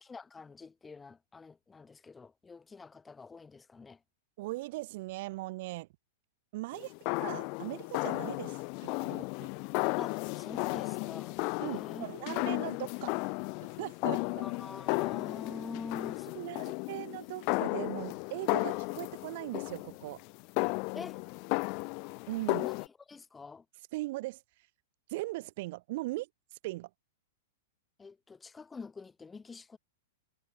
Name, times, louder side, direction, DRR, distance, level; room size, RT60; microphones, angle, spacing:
voice 1, 0.0-4.0 10.0-12.4 14.4-16.7 20.9-21.2 22.5-22.8 23.1-23.6 28.0-29.8, left 4 dB, 10° left, 6.8 m, -46 dB
voice 2, 4.4-5.9 6.5-6.9 7.2-9.2 11.6-13.2 13.8-14.4 16.3-20.2 22.3-22.6 23.9-24.4 25.1-26.3 26.6-26.9, right 20 dB, 55° right, 1.1 m, -39 dB
sound 1, 6.7-22.9, left 34 dB, 45° left, 0.7 m, -34 dB
hypercardioid pair, 135°, 0 cm